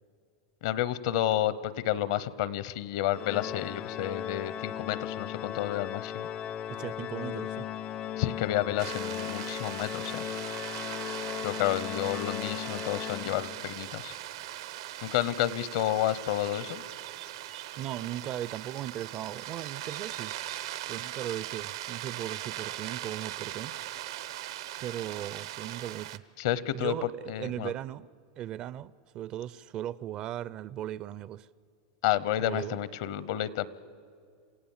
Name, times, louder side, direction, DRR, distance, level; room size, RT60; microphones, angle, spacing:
voice 1, 0.6-6.3 8.2-10.3 11.4-14.1 15.0-16.8 26.4-27.7 32.0-33.7, left 12 dB, 65° left, 0.9 m, -30 dB
Organ, 3.1-13.8, left 10 dB, 30° left, 0.5 m, -37 dB
voice 2, 6.7-7.7 17.8-20.3 20.9-23.8 24.8-26.2 26.7-28.1 28.4-31.5 32.4-32.8, right 12 dB, 35° right, 0.4 m, -37 dB
sound 1, 8.8-26.2, right 13 dB, 80° right, 0.9 m, -40 dB
28.0 x 15.5 x 7.3 m
supercardioid pair, 145°, 3 cm